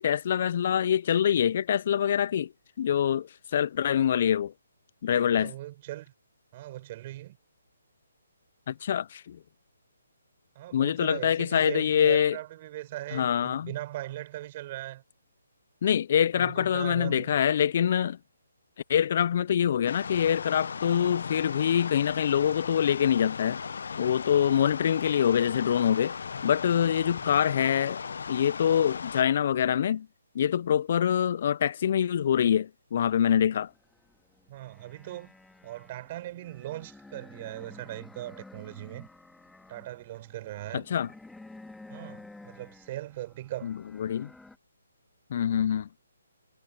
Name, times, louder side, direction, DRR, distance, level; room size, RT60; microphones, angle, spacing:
voice 1, 0.0-2.5 2.8-4.5 5.0-5.5 8.7-9.4 10.7-12.4 13.1-13.7 15.8-18.2 18.9-23.6 24.0-26.2 26.4-28.0 28.3-30.1 30.3-33.7 40.7-41.1 43.6-43.7 44.0-44.3 45.3-45.9, left 9 dB, 50° left, 0.4 m, -25 dB
voice 2, 5.1-6.1 6.5-7.4 10.5-15.0 16.3-17.3 27.2-27.3 34.5-35.3 35.6-39.1 39.7-40.9 41.9-43.7, right 15 dB, 35° right, 6.0 m, -39 dB
sound 1, 19.9-29.2, left 6 dB, 65° left, 0.9 m, -37 dB
sound 2, 33.6-44.6, left 2 dB, 5° left, 2.9 m, -52 dB
hypercardioid pair, 145°, 0 cm